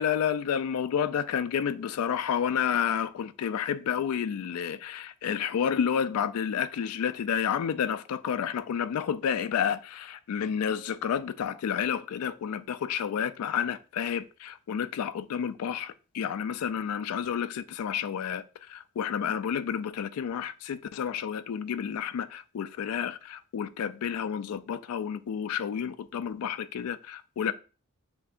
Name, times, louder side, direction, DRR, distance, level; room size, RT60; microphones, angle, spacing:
voice 1, 0.0-27.5, left 8 dB, 85° left, 0.3 m, -30 dB
6.9 x 2.8 x 2.5 m
head